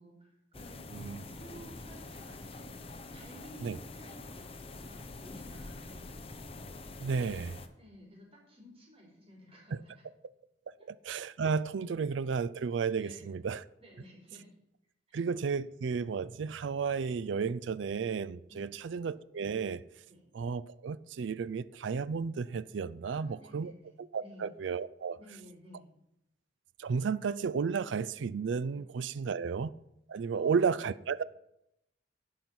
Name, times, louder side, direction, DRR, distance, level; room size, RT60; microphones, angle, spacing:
voice 1, 0.0-2.7 3.1-6.2 7.0-7.3 7.8-10.0 10.8-10.9 13.0-13.2 13.8-14.5 15.1-15.2 18.5-18.7 20.1-20.3 23.1-24.5 25.2-25.9 29.4-29.5 30.3-30.6, equal, 30° right, 4.0 m, -54 dB
sound 1, 0.5-7.7, left 2 dB, 30° left, 0.8 m, -46 dB
voice 2, 7.0-7.5 9.7-9.8 10.9-13.6 15.1-19.8 20.3-23.7 24.0-25.2 26.8-29.7 30.1-31.2, right 5 dB, 75° right, 0.4 m, -33 dB
11.0 x 5.8 x 7.9 m
head